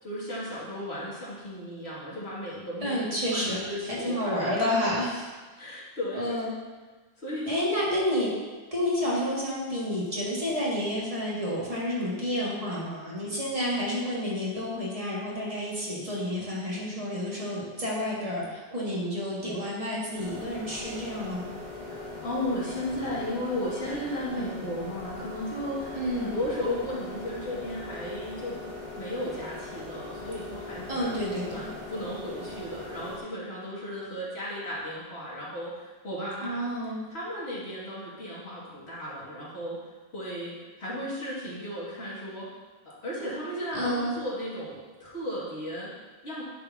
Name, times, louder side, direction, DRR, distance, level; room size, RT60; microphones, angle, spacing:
voice 1, 0.0-4.9 5.6-6.4 7.2-7.7 21.8-28.6 29.0-31.1 31.5-39.8 40.1-42.5 42.8-46.4, left 1 dB, 75° left, -7 dB, 2.6 m, -35 dB
voice 2, 2.8-3.6 4.0-5.3 6.1-6.5 7.5-8.3 8.7-21.5 25.9-26.3 30.9-31.7 36.4-37.1 43.7-44.2, left 1 dB, 35° right, -7 dB, 2.1 m, -30 dB
sound 1, 20.1-33.2, left 2 dB, 45° left, 2.0 m, -40 dB
10.0 x 6.9 x 2.8 m, 1.3 s
omnidirectional pair, 1.1 m